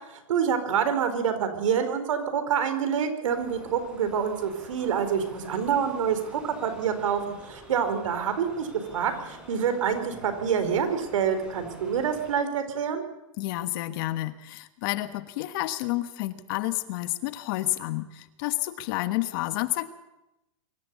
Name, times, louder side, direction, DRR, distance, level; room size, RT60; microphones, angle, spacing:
voice 1, 0.3-13.0, right 7 dB, 75° right, 8 dB, 4.5 m, -27 dB
sound 1, 3.3-12.4, right 1 dB, 5° right, 6.9 m, -48 dB
voice 2, 13.4-19.9, left 17 dB, 40° left, 12 dB, 1.3 m, -30 dB
24.0 x 14.5 x 8.4 m, 0.92 s
supercardioid pair, 160°, 17 cm